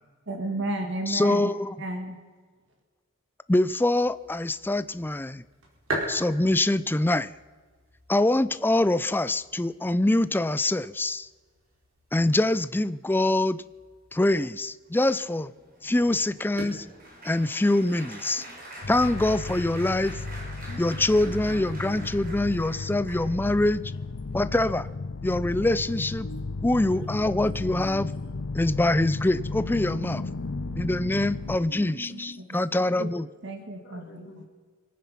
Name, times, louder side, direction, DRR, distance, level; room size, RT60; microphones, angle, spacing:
voice 1, 0.3-1.5 1.8-2.2 32.1-32.7 33.0-33.1 33.4-34.5, right 2 dB, 65° right, 5 dB, 1.6 m, -33 dB
voice 2, 1.1-1.7 3.5-5.4 6.1-7.3 8.1-11.3 12.1-13.6 14.1-15.5 15.8-16.9 17.2-18.4 18.9-20.2 20.8-23.8 24.3-24.9 25.2-26.3 26.6-28.1 28.5-30.2 30.8-33.3, left 1 dB, 10° left, 15 dB, 0.4 m, -24 dB
sound 1, 3.5-17.6, right 1 dB, 90° right, 4.6 m, -42 dB
Applause, 15.3-23.6 24.2-24.5 24.7-24.9, right 1 dB, 45° right, 4.5 m, -45 dB
sound 2, 18.8-31.6, left 3 dB, 90° left, 0.8 m, -34 dB
voice 3, 20.6-23.0 23.4-24.7 26.2-28.6 30.0-33.2 33.8-34.5, left 1 dB, 60° left, 3 dB, 2.6 m, -46 dB
25.0 x 9.5 x 5.8 m, 1.5 s
head